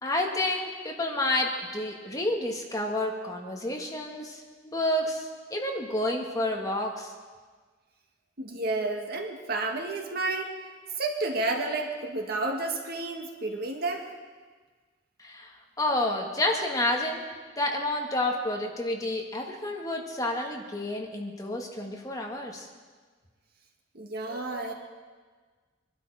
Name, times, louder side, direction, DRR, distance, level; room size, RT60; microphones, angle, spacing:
voice 1, 0.0-7.1 15.2-17.2 17.6-22.7, left 1 dB, 20° left, 0 dB, 1.9 m, -30 dB
voice 2, 8.4-10.5 11.0-14.0 23.9-24.7, right 2 dB, 55° right, 2 dB, 1.9 m, -31 dB
24.5 x 12.0 x 4.9 m, 1.5 s
head